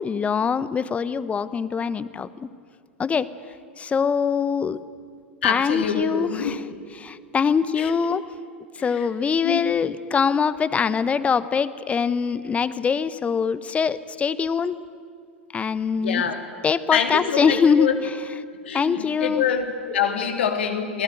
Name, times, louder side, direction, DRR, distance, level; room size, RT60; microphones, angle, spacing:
voice 1, 0.0-2.5 3.0-3.3 3.8-4.8 5.4-8.2 8.7-14.8 15.5-16.2 16.6-18.2 18.7-19.4, left 6 dB, 20° left, 16 dB, 1.1 m, -23 dB
voice 2, 5.4-6.6 7.8-8.0 9.0-9.1 9.4-9.7 16.0-16.4 16.9-18.0 18.6-21.0, left 7 dB, 70° left, 5 dB, 2.9 m, -25 dB
27.5 x 19.5 x 9.1 m, 2.2 s
figure-of-eight pair, 95°, 6 cm